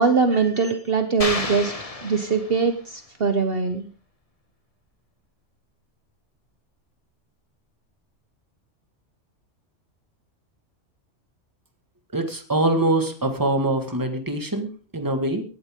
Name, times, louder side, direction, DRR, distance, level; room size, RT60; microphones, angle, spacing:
voice 1, 0.0-1.7 2.0-3.9, right 5 dB, 50° right, 7 dB, 1.3 m, -22 dB
sound 1, 1.2-2.9, left 2 dB, 30° left, 1.5 m, -30 dB
voice 2, 12.1-15.4, right 2 dB, 15° right, 6 dB, 1.8 m, -24 dB
17.5 x 12.5 x 3.7 m, 0.40 s
omnidirectional pair, 1.3 m